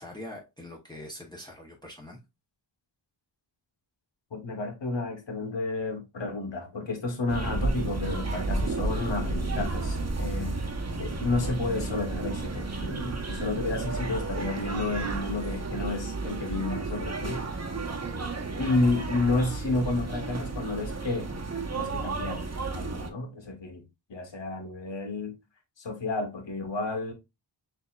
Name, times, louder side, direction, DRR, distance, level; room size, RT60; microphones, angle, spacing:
voice 1, 0.0-2.2, left 1 dB, 10° left, 0.9 m, -43 dB
voice 2, 4.3-10.7 11.0-17.6 18.6-21.3 21.7-23.8 24.1-25.4 25.8-27.1, left 3 dB, 85° left, 1.4 m, -31 dB
sound 1, 7.3-23.1, right 3 dB, 35° right, 1.0 m, -32 dB
6.7 x 2.8 x 2.4 m
wide cardioid pair, 105°, 43 cm